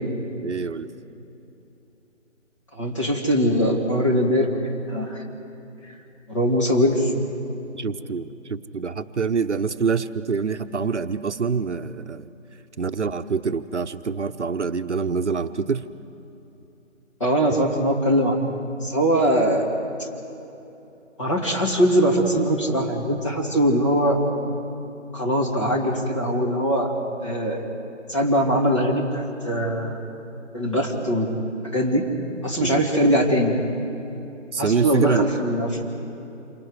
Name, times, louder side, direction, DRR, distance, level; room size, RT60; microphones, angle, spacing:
voice 1, 0.4-0.9 7.7-12.3 12.8-15.9 32.6-32.9 34.5-35.3 35.8-35.9, right 5 dB, 65° right, 9 dB, 0.8 m, -26 dB
voice 2, 2.7-5.2 6.3-7.1 17.2-19.6 20.0-20.1 21.2-24.2 25.1-26.9 27.2-27.6 28.1-30.0 30.5-31.4 31.6-32.1 32.4-33.6 34.6-35.8, equal, 25° left, -2 dB, 2.3 m, -21 dB
28.0 x 25.0 x 4.8 m, 2.9 s
figure-of-eight pair, 175°, 38 cm